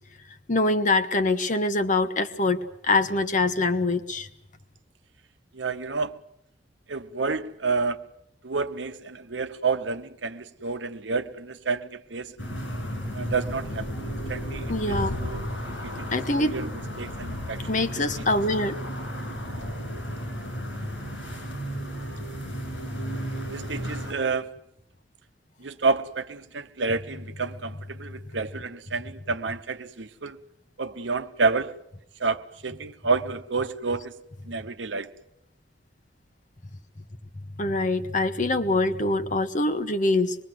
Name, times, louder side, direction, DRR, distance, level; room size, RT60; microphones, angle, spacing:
voice 1, 0.5-4.3 14.7-15.2 16.1-16.6 17.7-18.8 37.4-40.4, left 2 dB, 45° left, 1.2 m, -24 dB
voice 2, 5.5-6.2 6.9-8.0 8.4-12.4 13.1-13.9 14.3-15.4 16.0-16.1 16.4-16.7 17.0-17.7 23.5-24.5 25.6-30.4 30.8-31.8 32.2-34.2 34.5-35.1, right 4 dB, 80° right, 1.0 m, -29 dB
sound 1, 12.4-24.1, equal, 90° left, 7.4 m, -33 dB
25.0 x 22.0 x 7.8 m
head